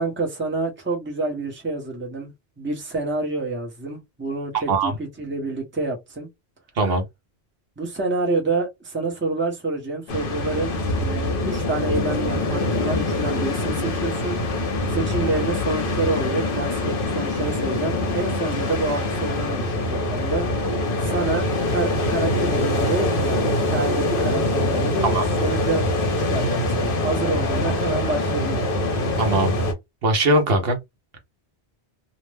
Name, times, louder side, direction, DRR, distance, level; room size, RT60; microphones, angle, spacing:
voice 1, 0.0-2.3 2.6-6.3 7.8-14.4 14.9-20.5 21.0-25.1 25.4-25.8 26.2-28.7, right 3 dB, 10° right, 0.8 m, -28 dB
voice 2, 4.5-5.0 6.8-7.0 25.0-25.2 29.2-29.5 30.0-30.8, right 2 dB, 65° right, 1.0 m, -20 dB
sound 1, 10.1-29.7, left 2 dB, 60° left, 0.9 m, -24 dB
2.5 x 2.1 x 3.3 m
omnidirectional pair, 1.1 m